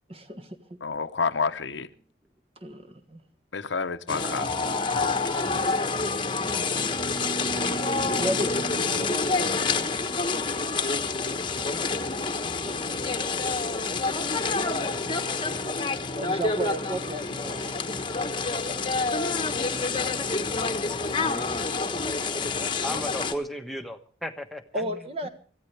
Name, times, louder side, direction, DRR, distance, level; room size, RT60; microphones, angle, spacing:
voice 1, 0.1-0.6 2.6-3.2 5.4-6.1 8.0-9.9 12.6-12.9 16.1-17.8 20.6-21.5 24.7-25.3, right 1 dB, 30° right, 9 dB, 1.5 m, -35 dB
voice 2, 0.8-1.9 3.5-4.6, left 5 dB, 80° left, 10 dB, 0.9 m, -29 dB
sound 1, 4.1-23.3, left 3 dB, 25° left, 1.2 m, -27 dB
voice 3, 22.8-25.3, equal, ahead, 4 dB, 1.2 m, -35 dB
24.0 x 14.5 x 3.4 m, 0.39 s
head